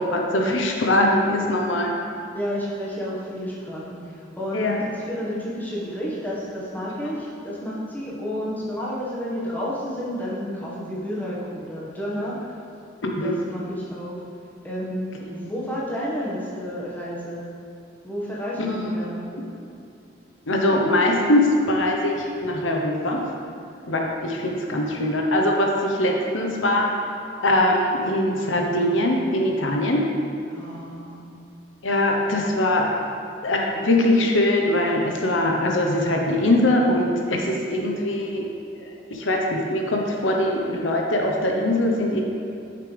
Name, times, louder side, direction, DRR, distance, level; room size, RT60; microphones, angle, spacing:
voice 1, 0.1-1.9 4.5-4.8 6.9-7.1 13.0-13.4 15.2-15.3 18.6-19.4 20.5-23.2 23.9-26.9 27.4-30.0 31.8-32.9 33.4-38.4 38.8-42.2, left 1 dB, 85° left, 0 dB, 1.0 m, -22 dB
voice 2, 2.3-4.8 5.1-12.4 13.2-14.2 14.6-17.4 18.0-19.2 30.5-31.3, equal, 10° left, -7 dB, 1.5 m, -31 dB
9.9 x 6.8 x 3.4 m, 2.6 s
head